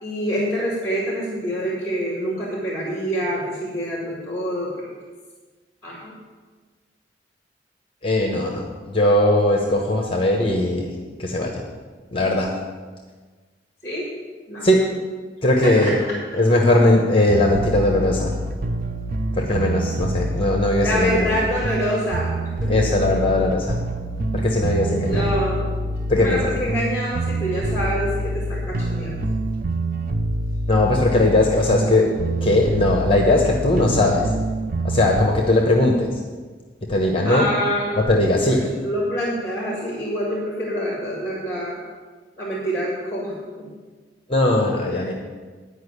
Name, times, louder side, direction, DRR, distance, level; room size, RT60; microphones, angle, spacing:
voice 1, 0.0-4.9 5.8-6.1 13.8-14.1 14.5-14.7 15.6-15.9 20.8-22.9 25.0-25.8 26.2-29.2 37.3-38.0 38.4-41.8 42.4-43.7 45.1-45.2, equal, 15° left, -3 dB, 1.8 m, -26 dB
voice 2, 8.0-8.7 8.9-10.9 11.2-11.6 12.1-12.5 14.6-14.8 15.4-16.0 16.3-18.3 19.3-21.4 22.7-23.8 24.3-25.3 26.1-26.5 30.7-32.1 32.4-34.3 34.8-36.2 36.9-37.5 38.0-38.6 44.3-45.1, left 1 dB, 30° left, 1 dB, 1.0 m, -19 dB
sound 1, 17.3-35.3, right 1 dB, 50° right, 0.6 m, -26 dB
10.5 x 5.3 x 8.1 m, 1.4 s
head